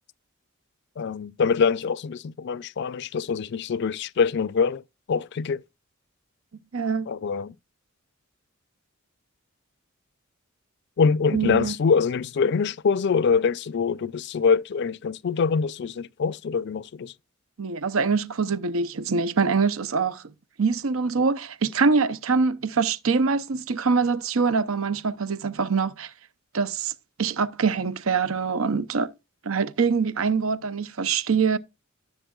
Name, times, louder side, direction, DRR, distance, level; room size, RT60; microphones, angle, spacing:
voice 1, 1.0-4.8 5.1-5.6 7.1-7.5 11.0-17.1, left 5 dB, 55° left, 0.4 m, -24 dB
voice 2, 6.7-7.1 11.3-11.7 17.6-20.2 20.6-26.1 26.5-26.9 27.2-29.1 29.4-31.6, right 5 dB, 85° right, 0.7 m, -24 dB
14.0 x 7.4 x 2.3 m
head